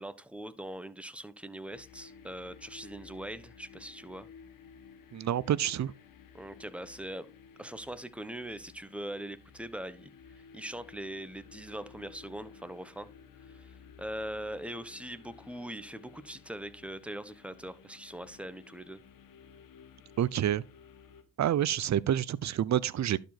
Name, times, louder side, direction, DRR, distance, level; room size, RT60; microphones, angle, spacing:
voice 1, 0.0-4.3 6.3-7.3 7.6-10.1 10.4-13.1 13.5-19.0, right 1 dB, 5° right, 1.2 m, -41 dB
sound 1, 1.7-21.2, left 6 dB, 65° left, 1.5 m, -55 dB
voice 2, 5.1-5.9 20.2-20.6 21.4-23.2, right 11 dB, 50° right, 0.7 m, -28 dB
11.5 x 5.1 x 4.2 m
supercardioid pair, 55°, 35 cm